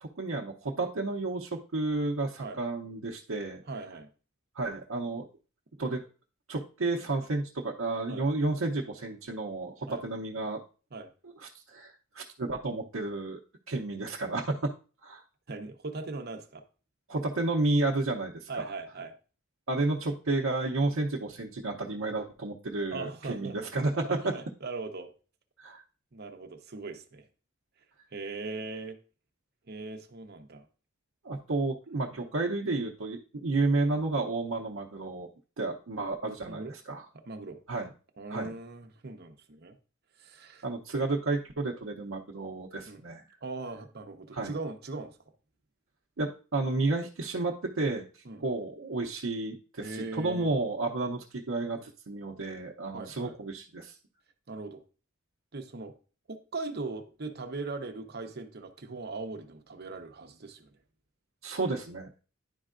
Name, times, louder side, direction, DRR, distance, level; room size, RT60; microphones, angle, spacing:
voice 1, 0.0-3.6 4.6-5.3 5.8-6.0 6.5-10.6 11.2-13.4 13.7-14.7 15.0-15.2 17.1-18.7 19.7-24.3 25.6-25.8 31.2-35.3 35.6-37.0 37.7-37.9 38.3-38.5 40.6-43.2 44.3-44.5 46.2-53.9 61.4-62.2, right 2 dB, 85° right, -1 dB, 0.7 m, -31 dB
voice 2, 3.7-4.1 8.1-8.3 9.9-10.0 10.9-11.1 15.5-16.6 18.5-19.1 22.9-23.6 23.9-25.1 26.1-27.3 28.1-29.0 29.7-30.7 32.1-32.3 36.5-36.7 37.3-37.6 38.2-39.7 40.2-40.6 42.8-43.0 43.4-45.2 48.2-48.4 49.8-50.5 52.9-53.4 54.5-54.8 55.5-55.9 56.3-60.7, right 3 dB, 50° right, 5 dB, 0.8 m, -39 dB
10.5 x 4.5 x 2.5 m, 0.36 s
head